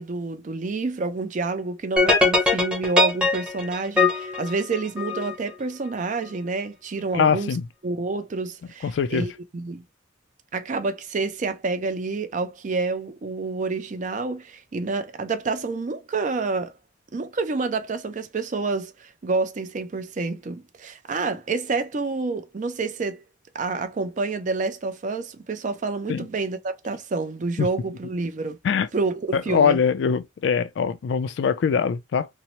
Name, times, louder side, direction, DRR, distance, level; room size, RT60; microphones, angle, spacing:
voice 1, 0.0-7.6 7.8-9.8 10.5-16.7 17.1-23.2 23.5-28.6 28.9-29.8, right 3 dB, 40° right, 0.4 m, -28 dB
sound 1, 2.0-5.3, left 2 dB, 5° right, 0.8 m, -21 dB
voice 2, 7.1-7.6 8.8-9.3 26.1-26.3 27.6-27.7 28.6-28.9 29.3-32.3, left 6 dB, 70° left, 0.3 m, -22 dB
2.7 x 2.0 x 2.8 m
head